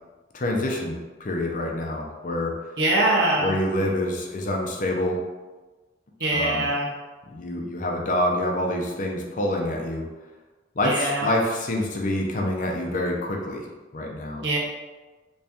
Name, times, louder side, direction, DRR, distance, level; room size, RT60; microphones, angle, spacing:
voice 1, 0.3-2.6 3.4-5.2 6.3-6.7 7.3-10.1 10.8-13.7 13.9-14.4, left 1 dB, 45° left, 0 dB, 0.5 m, -26 dB
voice 2, 2.8-3.5 6.2-6.9 10.8-11.3 14.4-14.6, right 1 dB, 70° right, -2 dB, 0.8 m, -23 dB
3.1 x 2.8 x 3.5 m, 1.3 s
head